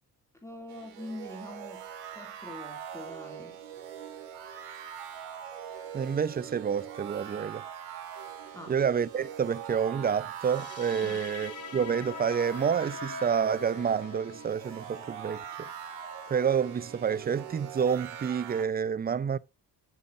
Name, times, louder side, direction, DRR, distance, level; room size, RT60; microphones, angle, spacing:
voice 1, 0.4-3.6 8.5-8.8 11.0-11.3, left 1 dB, 5° left, 2.8 m, -44 dB
sound 1, 0.7-18.6, right 9 dB, 80° right, 1.9 m, -42 dB
voice 2, 5.9-7.6 8.7-15.7 16.3-19.4, right 7 dB, 20° right, 0.4 m, -29 dB
sound 2, 10.3-17.3, left 6 dB, 35° left, 2.2 m, -45 dB
10.0 x 8.3 x 2.6 m
hypercardioid pair, 50°, 49 cm